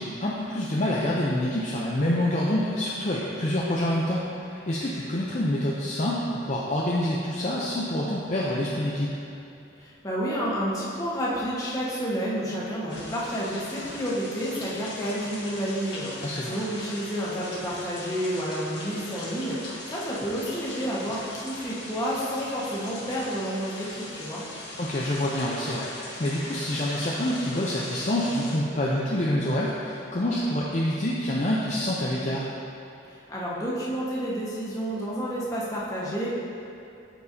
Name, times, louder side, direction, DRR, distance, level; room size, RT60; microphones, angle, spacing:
voice 1, 0.0-9.1 16.2-16.6 24.8-32.5, left 1 dB, 35° left, -5 dB, 0.5 m, -27 dB
voice 2, 9.8-24.4 33.1-36.3, equal, 15° left, -7 dB, 1.3 m, -30 dB
sound 1, 12.9-28.6, left 1 dB, 55° left, 1.5 m, -40 dB
13.5 x 4.5 x 2.7 m, 2.7 s
head